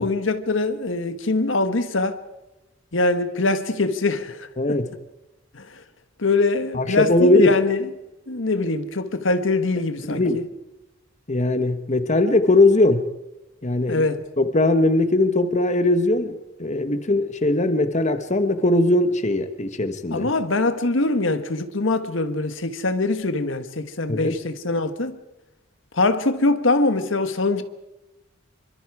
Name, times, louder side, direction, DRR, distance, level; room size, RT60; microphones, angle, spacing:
voice 1, 0.0-2.2 2.9-4.8 5.5-5.8 6.2-7.8 8.3-10.4 13.9-14.2 20.1-25.2 25.9-27.6, left 3 dB, 80° left, 1.4 m, -23 dB
voice 2, 4.6-4.9 6.7-7.5 10.0-10.4 11.3-13.0 13.6-14.1 14.4-20.3 24.1-24.4, left 2 dB, 35° left, 1.2 m, -20 dB
26.0 x 24.0 x 4.8 m
head